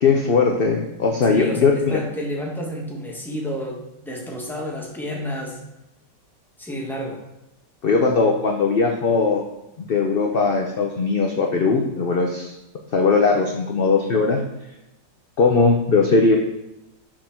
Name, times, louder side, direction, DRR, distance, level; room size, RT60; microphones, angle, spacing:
voice 1, 0.0-2.0 7.8-9.4 9.8-12.5 12.9-14.4 15.4-16.4, left 4 dB, 50° left, 2 dB, 0.6 m, -19 dB
voice 2, 1.3-5.6 6.6-7.2, equal, ahead, -2 dB, 1.2 m, -30 dB
6.8 x 3.8 x 5.8 m, 0.91 s
omnidirectional pair, 1.9 m